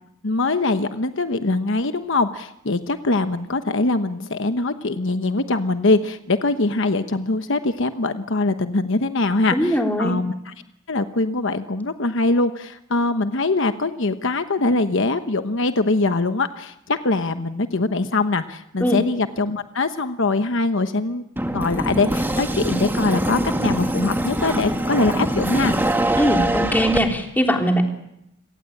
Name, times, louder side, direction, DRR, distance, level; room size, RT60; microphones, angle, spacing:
voice 1, 0.2-10.5 10.9-21.2 21.5-25.8, left 3 dB, 65° left, 9 dB, 1.1 m, -22 dB
voice 2, 9.5-10.2 18.8-19.0 26.2-27.8, equal, 10° left, 2 dB, 3.4 m, -20 dB
sound 1, 21.4-27.0, right 1 dB, 10° right, 2.0 m, -23 dB
29.0 x 18.0 x 8.6 m, 0.83 s
head